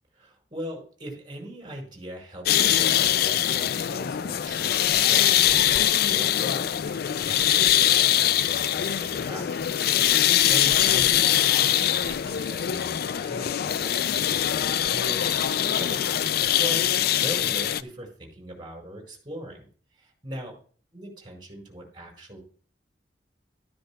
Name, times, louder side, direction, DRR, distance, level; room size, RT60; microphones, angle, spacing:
voice 1, 0.1-11.1 11.3-16.9 17.2-19.7 19.9-20.5 20.9-22.4, equal, 25° right, 0 dB, 5.1 m, -40 dB
sound 1, 2.5-17.8, left 11 dB, 60° left, 0.4 m, -23 dB
13.5 x 13.0 x 2.3 m, 0.43 s
head